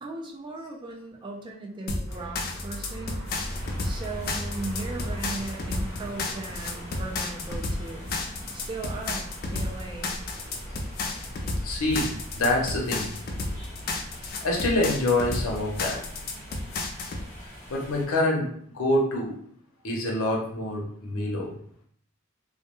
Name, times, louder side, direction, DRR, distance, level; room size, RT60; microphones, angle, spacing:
voice 1, 0.0-3.3 3.8-8.1 8.5-10.1, right 2 dB, 25° right, 0 dB, 0.4 m, -37 dB
sound 1, 1.9-17.2, left 2 dB, 45° left, 0.4 m, -32 dB
sound 2, 2.1-14.6, equal, 40° right, 0.8 m, -41 dB
sound 3, 3.2-18.1, equal, 10° left, 0.7 m, -42 dB
voice 2, 11.6-13.1 14.4-16.0 17.7-18.5 18.7-19.3 19.8-21.5, left 1 dB, 90° left, -1 dB, 0.7 m, -26 dB
2.2 x 2.1 x 2.9 m, 0.62 s
head